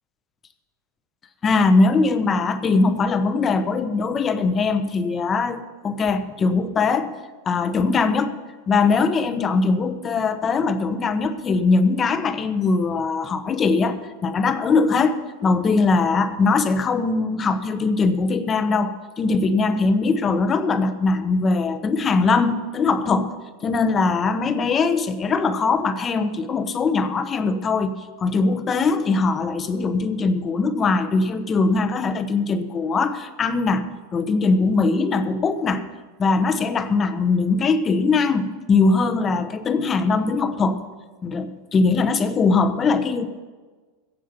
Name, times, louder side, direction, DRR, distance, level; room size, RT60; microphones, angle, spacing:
voice 1, 1.4-7.1 7.4-8.4 8.7-23.3 23.6-35.8 36.2-40.8 41.2-43.3, left 4 dB, 25° left, 11 dB, 1.0 m, -21 dB
16.0 x 7.5 x 6.8 m, 1.4 s
supercardioid pair, 125°, 0 cm